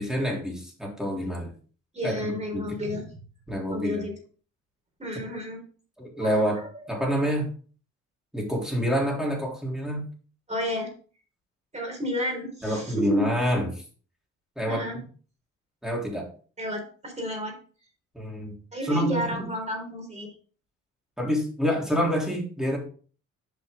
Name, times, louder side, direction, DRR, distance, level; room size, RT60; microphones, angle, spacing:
voice 1, 0.0-1.5 2.0-2.8 3.5-4.0 6.0-7.5 8.3-10.0 12.6-13.8 14.6-15.0 15.8-16.3 18.1-18.5 18.8-19.3 21.2-22.8, equal, ahead, -1 dB, 3.6 m, -27 dB
voice 2, 1.9-3.0 3.7-4.1 5.0-5.6 6.2-6.4 10.5-10.9 11.7-13.3 14.7-15.0 16.6-17.6 18.7-20.3, equal, 20° right, 1 dB, 3.9 m, -31 dB
8.7 x 5.3 x 3.8 m, 0.41 s
cardioid pair, 90°, 30 cm